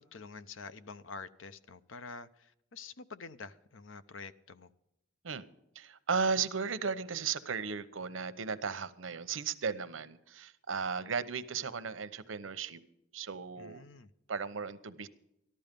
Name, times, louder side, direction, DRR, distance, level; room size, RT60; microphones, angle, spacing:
voice 1, 0.0-4.7 13.6-14.1, left 4 dB, 80° left, 13 dB, 0.7 m, -47 dB
voice 2, 5.7-12.8 13.1-13.8 14.3-15.1, right 5 dB, 85° right, 12 dB, 0.9 m, -35 dB
14.5 x 12.0 x 5.3 m, 0.83 s
head